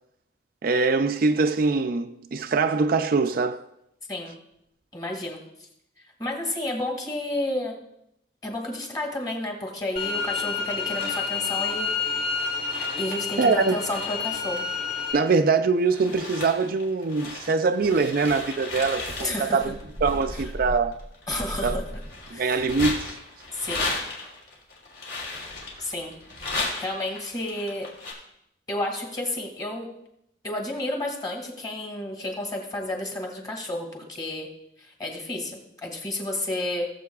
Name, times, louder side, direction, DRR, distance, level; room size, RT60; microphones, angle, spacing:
voice 1, 0.6-3.7 13.4-13.8 15.1-19.7 20.0-21.0 21.6-21.8 22.3-23.1, right 4 dB, 55° right, 0.4 m, -23 dB
voice 2, 4.9-5.4 6.2-7.8 8.4-11.9 13.0-14.7 19.2-19.6 21.3-21.8 22.3-22.6 23.5-23.9 25.8-26.1 26.6-27.9 28.7-29.9 30.4-34.5 35.0-36.9, left 1 dB, 20° left, 2.1 m, -31 dB
sound 1, 10.0-15.1, left 5 dB, 50° left, 4.2 m, -29 dB
sound 2, 10.8-11.4 12.0-15.4 15.8-28.1, left 2 dB, 70° left, 3.3 m, -35 dB
18.5 x 7.6 x 2.4 m
head